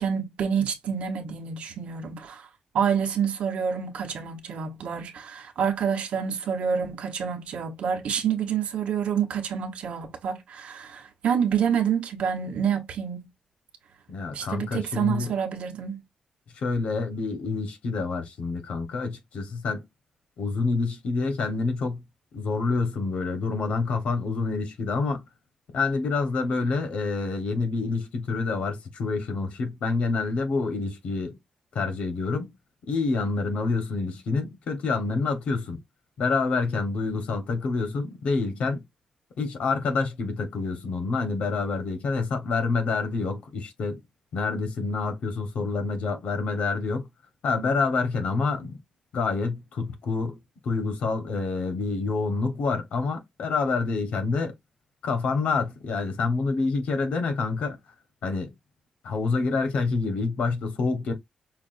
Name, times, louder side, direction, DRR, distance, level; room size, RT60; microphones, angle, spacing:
voice 1, 0.0-2.5 2.7-13.3 14.3-16.0, right 7 dB, 85° right, 1.1 m, -28 dB
voice 2, 14.1-15.3 16.6-19.8 20.4-22.0 22.3-25.2 25.7-31.4 31.7-32.5 32.9-35.8 36.2-38.8 39.4-44.0 44.3-47.1 47.4-48.8 49.1-50.4 50.6-54.5 55.0-57.8 58.2-58.5 59.0-61.1, left 4 dB, 85° left, 1.2 m, -27 dB
5.8 x 2.5 x 2.5 m
wide cardioid pair, 135°, 2 cm